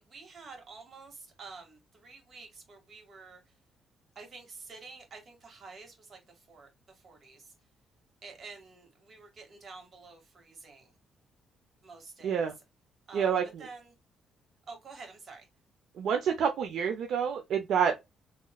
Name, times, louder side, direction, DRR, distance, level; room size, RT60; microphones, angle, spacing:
voice 1, 0.0-3.4 4.2-6.2 6.5-7.5 8.2-10.9 11.8-12.5 13.1-13.9 14.7-15.5, right 4 dB, 50° right, 1.8 m, -49 dB
voice 2, 13.1-13.7 16.0-18.0, right 7 dB, 75° right, 0.5 m, -28 dB
4.0 x 3.0 x 2.3 m
cardioid pair, 90°, 0 cm